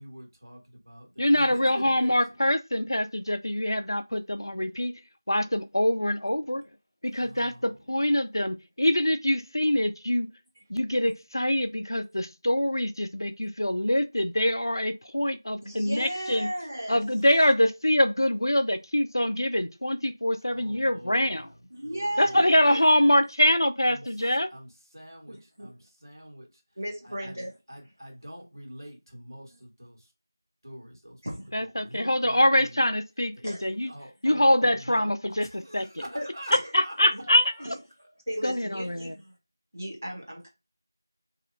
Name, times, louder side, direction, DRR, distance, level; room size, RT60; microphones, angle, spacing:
voice 1, 0.0-2.1 7.1-7.8 20.5-23.0 23.8-27.4 27.7-30.1 30.6-31.2 31.6-32.8 33.3-33.5 33.8-35.1 35.4-37.7 38.0-38.1, equal, 70° right, 1.4 m, -46 dB
voice 2, 1.2-4.9 5.3-6.6 7.0-10.3 10.7-16.5 16.9-21.5 22.2-24.5 31.5-33.9 34.2-35.9 36.7-37.5 38.4-39.2, left 1 dB, 85° left, 0.4 m, -24 dB
voice 3, 15.6-17.0 21.7-22.8 25.3-25.7 26.8-27.5 29.5-29.6 31.2-31.5 33.4-33.6 36.1-36.3 36.5-36.7 37.1-37.2 37.6-37.8 38.3-39.4 39.7-40.5, equal, 40° right, 0.9 m, -35 dB
2.7 x 2.0 x 2.5 m
figure-of-eight pair, 180°, 2 cm